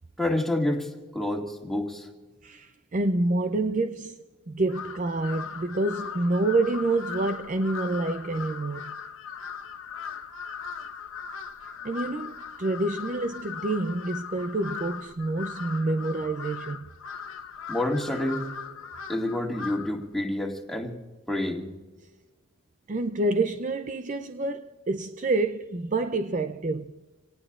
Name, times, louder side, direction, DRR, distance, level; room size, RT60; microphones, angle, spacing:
voice 1, 0.2-2.1 17.7-18.4 19.1-20.9 21.3-21.7, left 1 dB, ahead, 2.1 m, -28 dB
voice 2, 2.4-9.0 11.8-16.9 22.9-27.0, right 2 dB, 35° right, 0.4 m, -28 dB
Crow, 4.7-20.0, left 6 dB, 65° left, 1.1 m, -39 dB
27.5 x 18.5 x 2.4 m
head